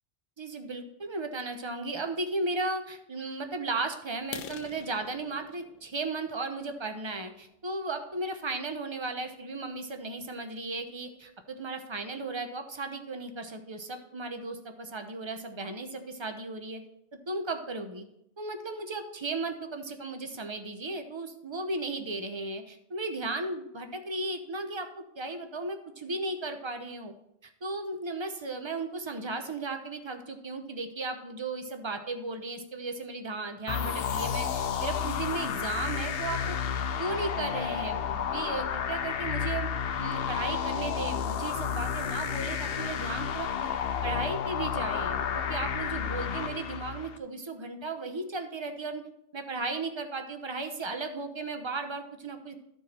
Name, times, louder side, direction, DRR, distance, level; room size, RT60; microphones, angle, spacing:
voice 1, 0.4-16.8 17.3-18.0 18.4-27.1 27.6-36.6 37.0-38.0 38.3-39.7 40.0-43.7 44.0-49.0 49.3-52.6, right 3 dB, 25° right, 6 dB, 0.8 m, -35 dB
sound 1, 4.2-8.0 8.5-8.7 9.1-9.2 9.7-9.8 10.1-10.2 10.7-10.8 11.0-11.5, left 10 dB, 90° left, 0.9 m, -47 dB
sound 2, 33.7-47.2, left 7 dB, 60° left, 0.8 m, -31 dB
13.5 x 4.7 x 4.2 m, 0.80 s
omnidirectional pair, 1.2 m